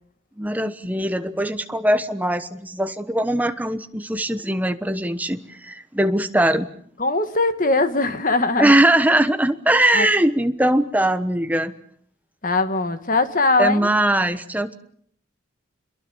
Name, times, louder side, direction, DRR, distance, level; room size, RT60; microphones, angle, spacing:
voice 1, 0.4-6.7 8.6-11.7 13.6-14.7, right 1 dB, 10° right, 9 dB, 1.1 m, -21 dB
voice 2, 7.0-8.7 9.9-10.1 12.4-13.9, left 3 dB, 40° left, 11 dB, 1.7 m, -20 dB
27.5 x 22.5 x 7.2 m, 0.63 s
head